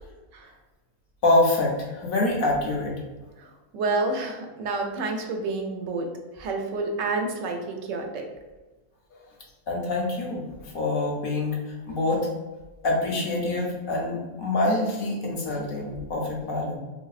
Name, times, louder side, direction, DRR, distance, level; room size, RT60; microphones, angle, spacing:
voice 1, 1.2-2.9 9.7-12.3 12.8-16.8, left 2 dB, 55° left, -1 dB, 0.6 m, -25 dB
voice 2, 3.7-6.0 6.4-8.2, right 3 dB, 70° right, 3 dB, 0.8 m, -29 dB
3.1 x 2.6 x 2.3 m, 1.2 s
omnidirectional pair, 1.6 m